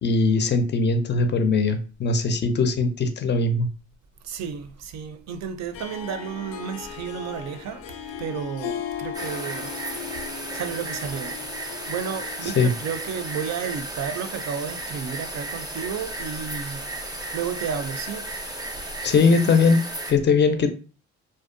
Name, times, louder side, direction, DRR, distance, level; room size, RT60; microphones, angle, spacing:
voice 1, 0.0-3.7 12.4-12.7 19.0-19.8 20.1-20.7, left 4 dB, 35° left, 0.4 m, -20 dB
voice 2, 4.2-7.9 8.2-10.1 10.5-11.3 11.9-16.9 17.3-18.3 18.6-19.0, right 7 dB, 65° right, 0.4 m, -32 dB
Harp, 5.7-13.4, left 8 dB, 90° left, 0.5 m, -37 dB
sound 1, 9.1-20.1, right 1 dB, 15° right, 0.5 m, -34 dB
2.5 x 2.1 x 2.5 m
cardioid pair, 90°, 30 cm